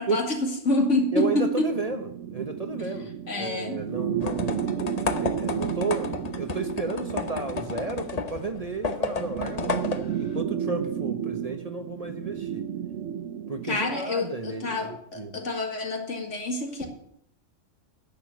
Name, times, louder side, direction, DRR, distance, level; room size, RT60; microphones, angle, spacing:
voice 1, 0.0-1.7 2.8-2.9 3.3-3.8 13.6-16.9, left 2 dB, 70° left, 2 dB, 2.5 m, -27 dB
voice 2, 1.1-2.0 2.3-3.1 3.4-4.7 5.2-9.8 10.2-12.6 13.5-14.9 15.2-15.4, right 3 dB, 35° right, 7 dB, 1.0 m, -32 dB
sound 1, 1.7-14.1, right 9 dB, 75° right, 1.0 m, -33 dB
sound 2, 4.2-10.4, left 4 dB, 35° left, 0.8 m, -32 dB
10.5 x 6.9 x 9.2 m, 0.73 s
omnidirectional pair, 1.3 m